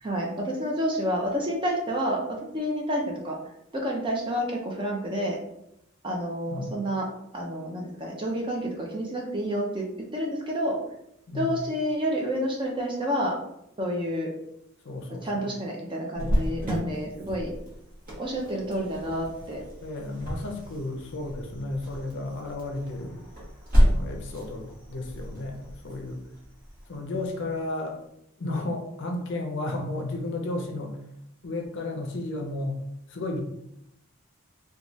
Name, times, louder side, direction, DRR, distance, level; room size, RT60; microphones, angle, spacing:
voice 1, 0.0-2.2 2.5-3.4 3.7-5.4 6.0-7.1 7.3-9.9 10.1-10.8 11.3-13.4 13.8-14.3 15.2-17.5 18.2-19.6, equal, 20° right, -1 dB, 0.4 m, -29 dB
voice 2, 14.8-15.5 16.2-16.6 19.8-23.2 23.9-26.2 26.9-28.0 28.4-31.0 31.4-32.7 33.1-33.4, left 2 dB, 55° left, 2 dB, 0.5 m, -33 dB
Cricket, 16.2-27.6, equal, 40° right, 0.9 m, -30 dB
3.1 x 2.2 x 2.6 m, 0.79 s
head